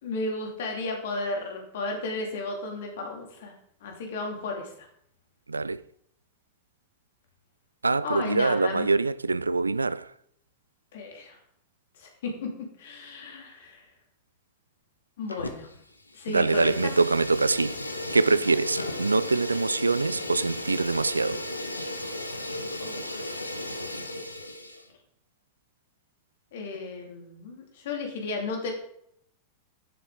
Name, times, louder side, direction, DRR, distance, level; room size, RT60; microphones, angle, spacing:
voice 1, 0.0-3.5 3.8-4.9 8.0-8.9 10.9-11.4 12.0-13.9 15.2-15.7 16.1-16.9 22.8-23.4 26.5-28.7, left 3 dB, 55° left, 2.7 m, -34 dB
voice 2, 5.5-5.8 7.8-10.1 16.3-17.7 18.1-21.4, right 3 dB, 80° right, 0.4 m, -24 dB
Fire, 15.3-15.8 16.1-24.9, left 1 dB, 85° left, 0.9 m, -35 dB
11.0 x 7.3 x 3.8 m
figure-of-eight pair, 90°, 0 cm